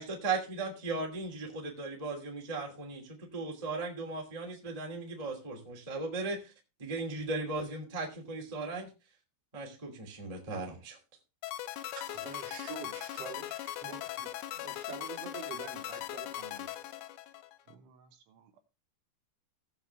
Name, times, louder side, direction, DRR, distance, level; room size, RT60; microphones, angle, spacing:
voice 1, 0.0-6.5 6.8-8.9 9.5-11.0, right 3 dB, 15° right, 1.1 m, -37 dB
sound 1, 11.4-17.7, left 14 dB, 90° left, 3.3 m, -40 dB
voice 2, 12.0-16.8, right 8 dB, 50° right, 2.0 m, -47 dB
voice 3, 17.7-18.6, right 5 dB, 75° right, 3.6 m, -60 dB
17.0 x 6.8 x 3.4 m
omnidirectional pair, 5.6 m